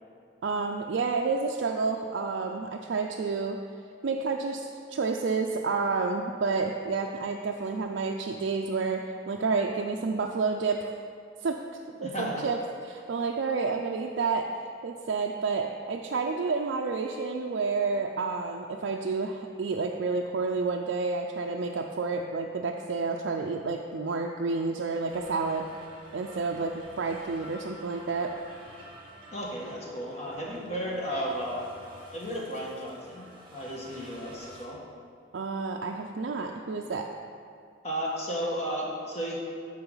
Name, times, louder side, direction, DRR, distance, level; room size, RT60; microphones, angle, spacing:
voice 1, 0.4-3.6 4.0-10.9 11.4-11.6 12.0-12.6 12.9-14.5 14.8-25.7 26.1-28.4 35.3-37.1, right 4 dB, 65° right, 1 dB, 0.4 m, -30 dB
voice 2, 12.0-12.5 29.3-31.6 32.1-33.3 33.5-34.8 37.8-39.4, equal, 35° left, -3 dB, 1.4 m, -33 dB
sound 1, 25.1-34.7, equal, 25° right, 1.3 m, -50 dB
12.5 x 4.7 x 3.9 m, 2.3 s
head